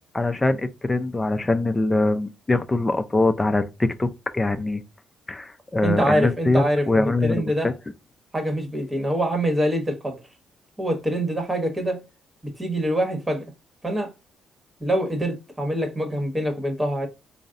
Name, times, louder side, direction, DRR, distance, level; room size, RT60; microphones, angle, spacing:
voice 1, 0.1-4.8 5.3-7.7, left 2 dB, 20° left, 0.5 m, -23 dB
voice 2, 5.8-7.7 8.3-10.2 10.8-12.0 12.4-13.4 13.8-14.1 14.8-17.1, equal, 15° right, 1.2 m, -25 dB
4.0 x 2.0 x 3.7 m
cardioid pair, 90°, 0 cm